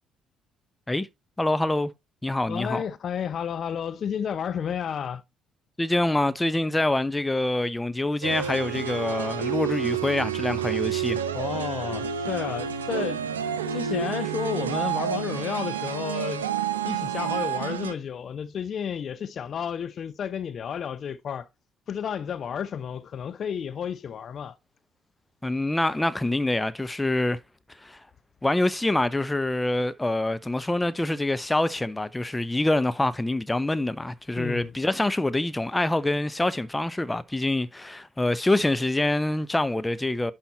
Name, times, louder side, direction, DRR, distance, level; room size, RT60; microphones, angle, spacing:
voice 1, 1.4-1.9 2.2-2.8 5.8-11.2 25.4-27.4 27.8-28.0 28.4-40.3, left 2 dB, 10° left, 0.8 m, -25 dB
voice 2, 2.4-5.2 11.3-13.2 13.7-16.5 16.8-21.5 21.9-24.6 34.4-34.7, left 8 dB, 45° left, 0.6 m, -31 dB
sound 1, 8.2-17.9, right 8 dB, 80° right, 0.7 m, -29 dB
11.0 x 4.3 x 4.3 m
figure-of-eight pair, 50°, 0 cm